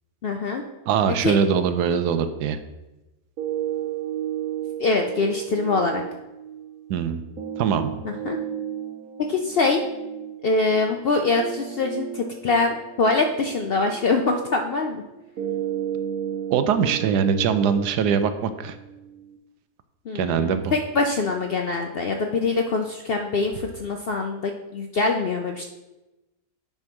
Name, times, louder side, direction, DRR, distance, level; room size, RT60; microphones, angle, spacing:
voice 1, 0.2-0.6 1.2-1.4 4.8-6.0 8.0-8.4 9.3-9.8 10.4-15.0 20.1-25.6, left 3 dB, 85° left, 3 dB, 0.5 m, -24 dB
voice 2, 0.9-2.6 6.9-7.2 7.6-7.9 16.5-18.8 20.1-20.7, right 7 dB, 90° right, 10 dB, 1.2 m, -22 dB
sound 1, 3.4-19.4, right 10 dB, 60° right, 1.4 m, -34 dB
9.0 x 3.5 x 5.7 m, 1.0 s
omnidirectional pair, 1.7 m